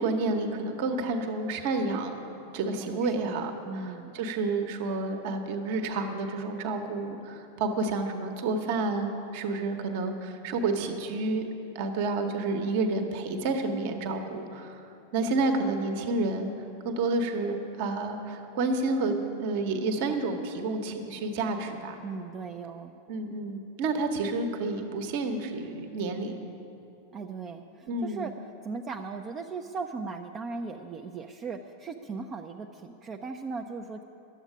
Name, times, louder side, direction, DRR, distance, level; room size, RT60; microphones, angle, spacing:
voice 1, 0.0-2.3 2.5-11.5 11.7-14.8 15.1-16.5 16.8-22.0 23.1-26.4 27.9-28.3, right 3 dB, 50° right, 5 dB, 1.2 m, -30 dB
voice 2, 2.9-4.1 22.0-22.9 27.1-28.3 28.6-34.0, right 4 dB, 25° right, 3 dB, 0.5 m, -38 dB
11.0 x 8.0 x 9.9 m, 3.0 s
figure-of-eight pair, 90°, 0 cm